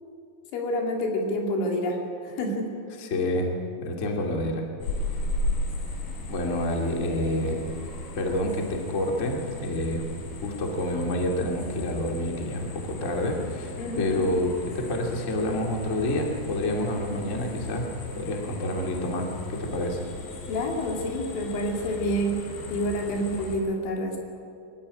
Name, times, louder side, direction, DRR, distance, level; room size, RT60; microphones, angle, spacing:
voice 1, 0.5-2.0 2.2-2.8 13.8-14.3 20.5-24.2, equal, 85° left, 1 dB, 5.0 m, -28 dB
voice 2, 3.0-3.5 3.8-4.6 6.3-7.6 8.1-10.0 10.4-17.9 18.1-20.0, left 1 dB, 30° left, 1 dB, 1.4 m, -28 dB
sound 1, 4.8-23.6, left 2 dB, 60° left, 5.6 m, -36 dB
22.5 x 14.5 x 9.8 m, 2.5 s
omnidirectional pair, 5.4 m